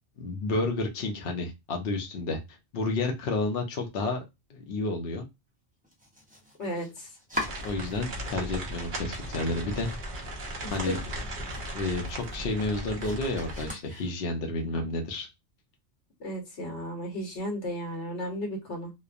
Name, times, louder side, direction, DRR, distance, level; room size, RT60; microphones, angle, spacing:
voice 1, 0.2-4.2 4.5-5.3 7.6-9.9 10.2-10.3 10.7-11.0 11.7-15.3, left 2 dB, 65° left, 3 dB, 0.8 m, -31 dB
Domestic sounds home sounds, 5.8-8.4 8.7-9.5 9.8-9.9 10.4-10.5 10.8-14.5, left 1 dB, 10° right, 0.4 m, -42 dB
voice 2, 6.6-7.1 10.6-11.0 16.2-18.9, equal, 85° left, 0 dB, 1.3 m, -34 dB
sound 1, 7.3-13.7, right 1 dB, 50° right, 0.9 m, -37 dB
2.9 x 2.1 x 2.4 m, 0.22 s
omnidirectional pair, 1.2 m